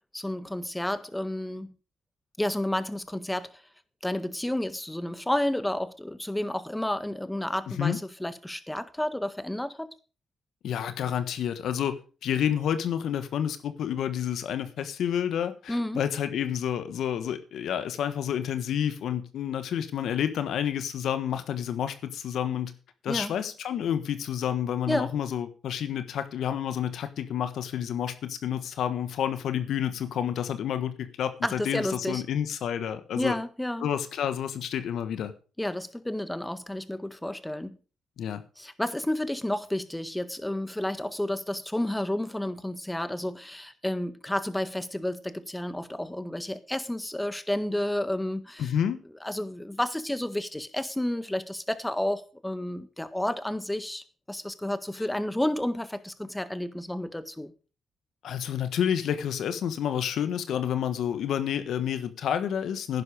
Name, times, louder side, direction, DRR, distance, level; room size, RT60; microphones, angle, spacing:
voice 1, 0.1-1.7 2.4-3.6 4.0-9.9 15.7-16.0 23.1-23.4 24.9-25.1 31.4-32.2 33.1-33.9 35.6-37.8 38.6-48.7 49.2-57.5, left 1 dB, 10° left, 1.6 m, -31 dB
voice 2, 7.7-8.0 10.6-12.0 12.2-22.7 23.0-33.3 33.8-35.3 38.2-38.4 48.6-49.0 58.2-63.0, left 9 dB, 75° left, 1.4 m, -29 dB
11.0 x 10.5 x 5.0 m
supercardioid pair, 55°, 0 cm